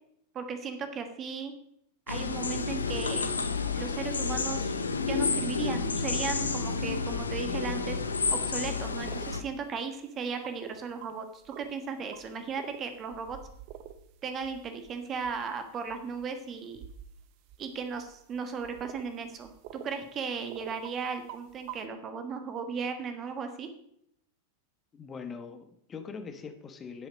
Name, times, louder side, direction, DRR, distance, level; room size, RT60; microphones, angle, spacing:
voice 1, 0.3-1.5 2.1-3.3 3.7-4.7 5.1-8.0 8.3-13.4 14.2-16.8 17.6-23.7, right 5 dB, 25° right, 7 dB, 1.3 m, -36 dB
sound 1, 2.1-9.4, left 4 dB, 75° left, 0.8 m, -30 dB
sound 2, 8.3-8.4 9.1-9.5 10.4-11.1 11.4-11.8 12.1-19.9 20.3-20.9 21.3-21.8, right 10 dB, 45° right, 0.9 m, -47 dB
voice 2, 24.9-27.1, left 5 dB, 20° left, 8 dB, 1.3 m, -42 dB
11.0 x 7.8 x 5.1 m, 0.73 s
figure-of-eight pair, 90°, 0 cm